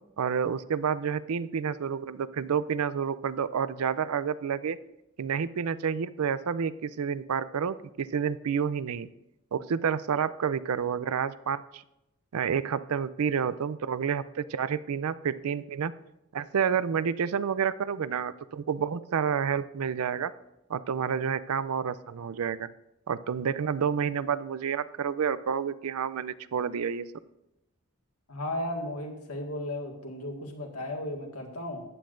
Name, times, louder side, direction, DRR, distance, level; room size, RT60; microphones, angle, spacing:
voice 1, 0.2-4.8 5.2-9.1 9.5-11.8 12.3-15.9 16.3-20.3 20.7-22.7 23.1-27.1, right 7 dB, 85° right, 16 dB, 0.4 m, -29 dB
voice 2, 28.3-31.8, left 1 dB, 85° left, 2 dB, 1.8 m, -35 dB
14.5 x 9.3 x 2.5 m, 0.88 s
head